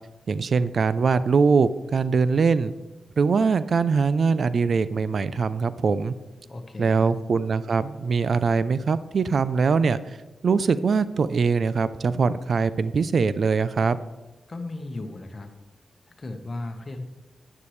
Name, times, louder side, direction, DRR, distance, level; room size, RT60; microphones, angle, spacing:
voice 1, 0.3-2.7 3.2-6.1 6.8-10.0 10.4-14.0, right 5 dB, 60° right, 15 dB, 0.4 m, -22 dB
voice 2, 6.5-7.1 14.5-15.5 16.2-17.0, left 2 dB, 40° left, 5 dB, 1.2 m, -35 dB
10.0 x 9.6 x 3.2 m, 1.1 s
cardioid pair, 85°, 0 cm